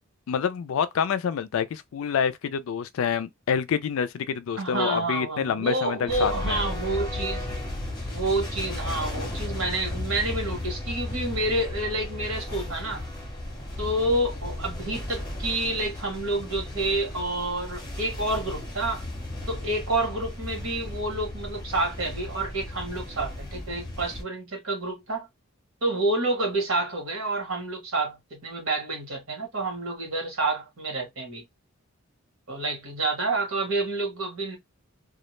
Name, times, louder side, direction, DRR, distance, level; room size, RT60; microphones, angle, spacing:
voice 1, 0.3-6.6, left 7 dB, 70° left, 0.3 m, -27 dB
voice 2, 4.6-7.5 8.1-13.1 13.8-19.0 19.5-25.3 25.8-31.4 32.5-34.6, right 2 dB, 70° right, 1.2 m, -29 dB
sound 1, 6.1-24.2, left 1 dB, 20° left, 0.8 m, -35 dB
2.3 x 2.1 x 3.0 m
head